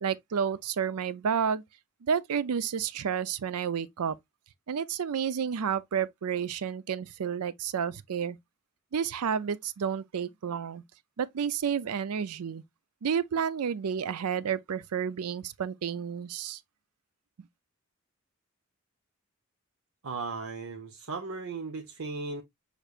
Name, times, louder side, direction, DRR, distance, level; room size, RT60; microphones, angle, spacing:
voice 1, 0.0-1.6 2.0-4.2 4.7-8.4 8.9-10.8 11.2-12.6 13.0-16.6, right 7 dB, 85° right, 0.5 m, -30 dB
voice 2, 20.0-22.4, right 4 dB, 70° right, 0.8 m, -36 dB
6.5 x 3.2 x 2.4 m
head